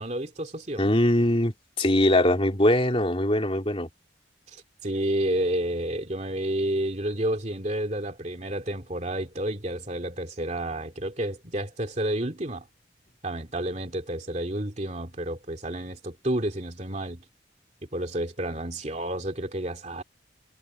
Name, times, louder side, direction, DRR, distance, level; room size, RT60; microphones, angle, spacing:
voice 1, 0.0-0.9 4.5-12.7 13.2-17.2 17.9-20.0, right 1 dB, 35° right, 2.6 m, -30 dB
voice 2, 0.8-3.9, left 1 dB, 30° left, 3.1 m, -22 dB
head